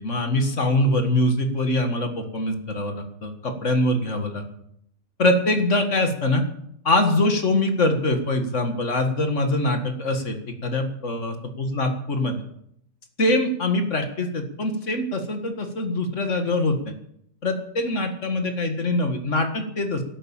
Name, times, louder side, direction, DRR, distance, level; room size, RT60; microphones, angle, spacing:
voice 1, 0.0-4.4 5.2-6.4 6.8-10.4 10.6-12.4 13.2-16.9 17.4-20.0, left 1 dB, 50° left, 6 dB, 2.1 m, -23 dB
12.5 x 11.5 x 8.8 m, 0.72 s
omnidirectional pair, 1.7 m